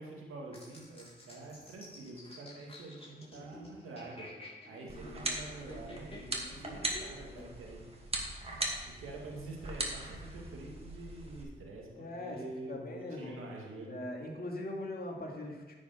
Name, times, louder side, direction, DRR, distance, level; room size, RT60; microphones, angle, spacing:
voice 1, 0.0-4.3 4.6-7.9 8.3-14.0, right 2 dB, 80° right, -1 dB, 2.2 m, -47 dB
sound 1, 0.5-7.5, left 1 dB, 30° left, 3.0 m, -51 dB
sound 2, 4.9-11.4, right 1 dB, 30° right, 2.4 m, -40 dB
voice 2, 12.0-12.4 12.7-13.4 13.9-15.7, left 1 dB, 45° left, 0 dB, 2.5 m, -40 dB
9.6 x 6.4 x 5.7 m, 1.3 s
supercardioid pair, 45°, 21 cm